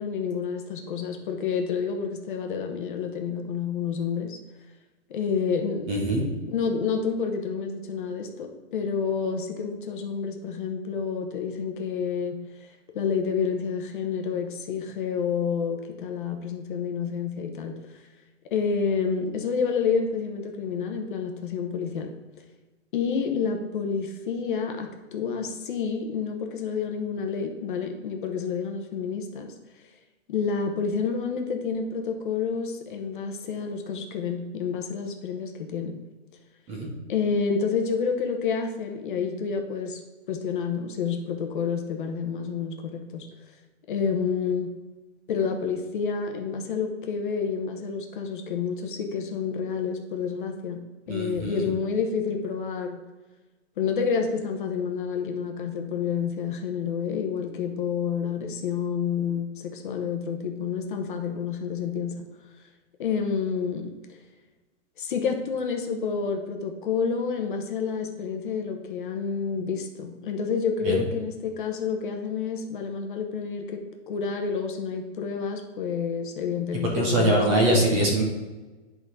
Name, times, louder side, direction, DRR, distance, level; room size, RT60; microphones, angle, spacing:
voice 1, 0.0-4.4 5.1-5.9 6.5-12.4 12.9-17.7 18.5-22.1 22.9-29.5 30.3-36.0 37.1-40.0 40.3-43.3 43.9-44.7 45.3-50.8 51.1-53.0 53.8-62.1 63.0-63.9 65.0-78.0, left 6 dB, 45° left, 4 dB, 0.9 m, -29 dB
voice 2, 5.9-6.3 36.7-36.9 51.1-51.6 70.8-71.0 76.9-78.2, right 1 dB, 15° right, 0 dB, 0.9 m, -23 dB
10.0 x 3.9 x 4.8 m, 1.2 s
hypercardioid pair, 165°, 36 cm